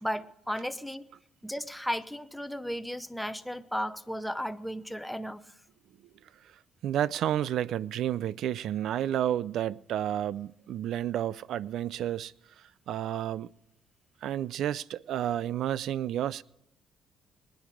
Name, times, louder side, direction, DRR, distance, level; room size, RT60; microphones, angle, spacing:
voice 1, 0.0-1.1 1.4-5.5, equal, ahead, 0.8 m, -34 dB
voice 2, 6.8-12.3 12.9-13.5 14.2-16.4, right 11 dB, 70° right, 0.4 m, -31 dB
21.0 x 10.0 x 5.0 m
cardioid pair, 105°, 0 cm